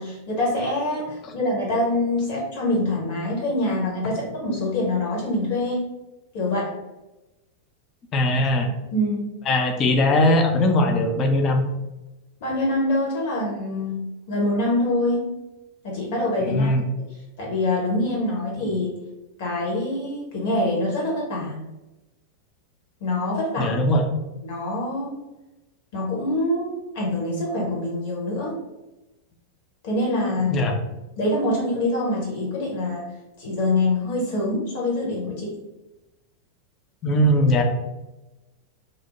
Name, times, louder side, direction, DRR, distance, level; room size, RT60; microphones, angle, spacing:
voice 1, 0.0-5.9 6.3-6.7 8.9-9.2 12.4-15.2 15.8-16.7 17.4-19.0 19.4-21.6 23.0-23.8 24.4-25.1 25.9-28.5 29.8-30.7 31.2-33.1 33.4-35.5, left 1 dB, 50° left, -3 dB, 1.0 m, -25 dB
voice 2, 8.1-8.7 9.5-11.6 16.5-16.8 23.6-24.0 30.5-30.7 37.0-37.6, left 1 dB, 30° left, 4 dB, 0.4 m, -20 dB
2.6 x 2.0 x 2.9 m, 1.0 s
figure-of-eight pair, 90°, 0 cm